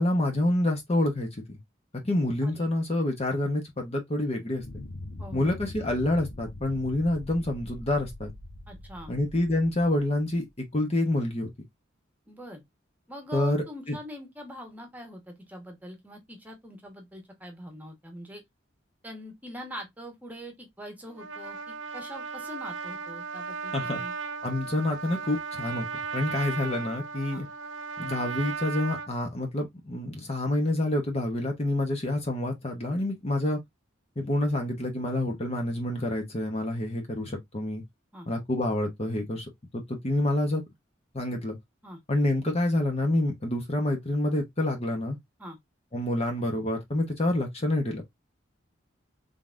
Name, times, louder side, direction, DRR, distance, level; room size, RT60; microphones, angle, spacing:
voice 1, 0.0-1.6 2.0-4.6 5.3-8.3 9.1-11.5 13.3-13.9 23.7-24.0 24.4-27.5 28.0-33.6 34.2-37.8 38.3-39.5 39.7-40.6 41.1-41.6 42.1-45.2 45.9-48.0, left 1 dB, 35° left, 1.0 m, -27 dB
sound 1, 4.6-10.3, left 1 dB, 85° left, 1.0 m, -42 dB
voice 2, 5.2-5.7 8.7-9.1 12.3-12.6 13.1-18.4 19.0-24.1 27.3-27.4 38.1-38.3 41.8-42.0 45.4-45.6, equal, 10° right, 1.3 m, -43 dB
Trumpet, 21.1-29.1, right 5 dB, 80° right, 0.8 m, -36 dB
3.9 x 3.6 x 2.4 m
head